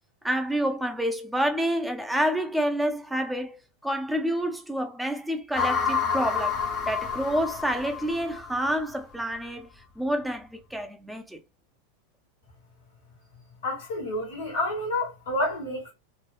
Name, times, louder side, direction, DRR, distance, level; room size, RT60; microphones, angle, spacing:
voice 1, 0.2-6.6 6.9-9.7 10.0-11.4, equal, 5° right, 0.5 m, -28 dB
sound 1, 5.5-8.8, left 5 dB, 40° left, 0.8 m, -29 dB
voice 2, 13.6-15.9, left 1 dB, 65° left, 2.1 m, -29 dB
4.3 x 2.1 x 2.4 m
figure-of-eight pair, 90°, 0 cm